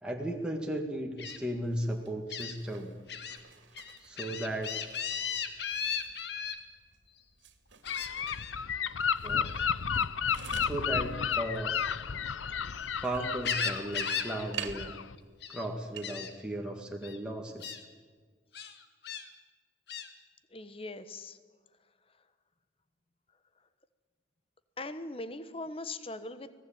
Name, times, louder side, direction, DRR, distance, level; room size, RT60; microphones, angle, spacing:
voice 1, 0.0-2.9 4.0-4.8 9.2-9.5 10.6-11.7 13.0-15.0 15.5-17.8, right 1 dB, 5° right, 0 dB, 1.9 m, -36 dB
Gull seagull, 1.2-1.4 2.3-2.5 3.1-3.4 3.7-6.6 7.8-8.5 9.4-9.7 11.6-12.8 13.2-14.3 14.6-14.9 15.2-15.7 16.0-16.3 17.0-17.2 17.6-17.8 18.5-19.2 19.9-20.1, left 7 dB, 60° left, 2.0 m, -36 dB
sound 1, 1.3-16.1, right 7 dB, 75° right, 2.5 m, -50 dB
Gull seagull / Wind, 7.9-15.1, left 7 dB, 90° left, 0.8 m, -32 dB
voice 2, 20.5-21.4 22.1-22.2 24.8-26.5, left 2 dB, 30° left, 12 dB, 1.2 m, -40 dB
25.5 x 18.5 x 8.8 m, 1.5 s
head